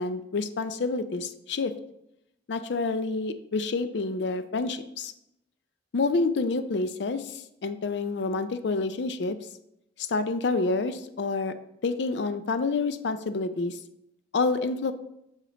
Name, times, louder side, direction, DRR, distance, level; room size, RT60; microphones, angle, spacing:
voice 1, 0.0-1.7 2.5-5.1 5.9-9.4 10.1-11.5 11.8-13.8 14.3-14.9, left 3 dB, 65° left, 11 dB, 0.4 m, -28 dB
5.6 x 5.0 x 3.8 m, 0.82 s
head